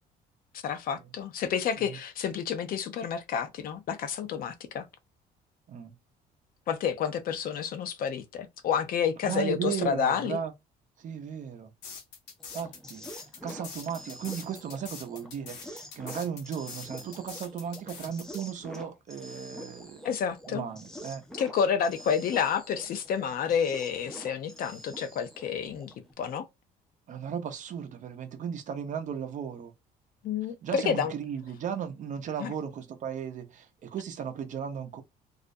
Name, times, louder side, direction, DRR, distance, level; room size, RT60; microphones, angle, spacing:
voice 1, 0.5-4.9 6.7-10.4 20.0-20.7 21.4-26.5 30.2-31.1 32.4-32.5, left 7 dB, 60° left, 0.6 m, -29 dB
voice 2, 9.2-10.5 11.0-11.7 12.5-20.0 20.5-21.3 27.1-29.7 30.6-35.0, right 8 dB, 50° right, 0.6 m, -36 dB
sound 1, 11.8-18.4, left 5 dB, 85° left, 0.9 m, -44 dB
sound 2, 12.4-26.1, equal, 5° left, 0.5 m, -47 dB
2.4 x 2.0 x 2.6 m
cardioid pair, 110°, 17 cm